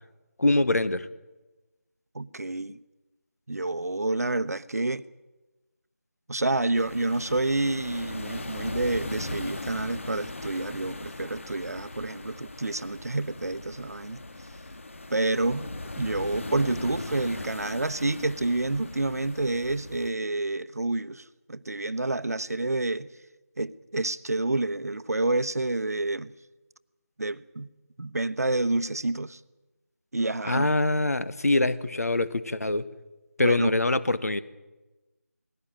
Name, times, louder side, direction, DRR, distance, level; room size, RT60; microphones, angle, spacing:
voice 1, 0.4-1.1 30.4-32.9 33.4-34.4, left 2 dB, 65° left, 1.5 m, -24 dB
voice 2, 2.1-2.8 3.5-5.1 6.3-14.2 15.1-15.7 16.0-23.1 23.6-26.3 27.2-27.7 28.0-29.4 30.1-30.7 33.4-33.8, right 2 dB, 70° right, 1.0 m, -28 dB
sound 1, 6.7-20.1, left 2 dB, 50° left, 2.0 m, -39 dB
20.5 x 16.5 x 8.9 m
figure-of-eight pair, 170°, 9 cm